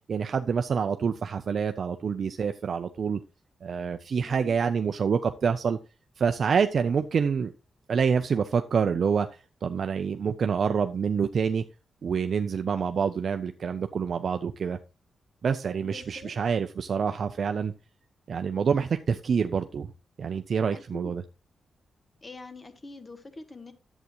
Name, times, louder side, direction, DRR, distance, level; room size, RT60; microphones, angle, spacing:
voice 1, 0.1-3.2 3.6-5.8 6.2-7.5 7.9-9.3 9.6-11.6 12.0-14.8 15.4-17.7 18.3-19.9 20.2-21.2, right 6 dB, 55° right, 8 dB, 0.5 m, -27 dB
voice 2, 4.2-4.7 15.8-16.3 20.7-21.2 22.2-23.7, left 2 dB, 25° left, 9 dB, 1.4 m, -44 dB
11.0 x 8.1 x 3.0 m, 0.29 s
wide cardioid pair, 135°, 0 cm